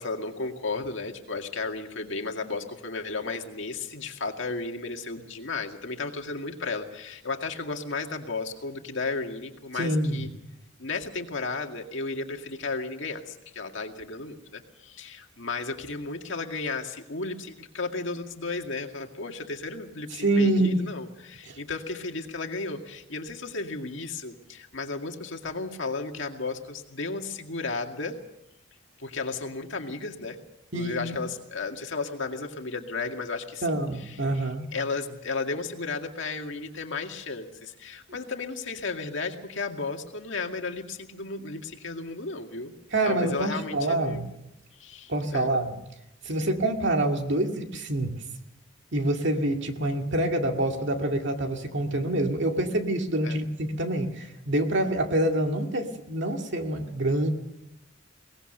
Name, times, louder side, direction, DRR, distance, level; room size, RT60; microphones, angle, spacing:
voice 1, 0.0-10.3 10.8-28.2 29.0-30.4 30.7-34.2 34.7-42.7 43.1-44.2 44.8-45.5 53.2-53.4, left 3 dB, 65° left, 4 dB, 2.1 m, -34 dB
voice 2, 9.7-10.3 20.1-20.8 21.5-21.6 30.7-31.2 33.6-34.7 38.1-38.2 42.9-44.3 45.1-45.8 46.2-48.1 48.9-57.3, right 1 dB, 60° right, 4 dB, 2.2 m, -26 dB
22.5 x 18.5 x 6.7 m, 0.87 s
head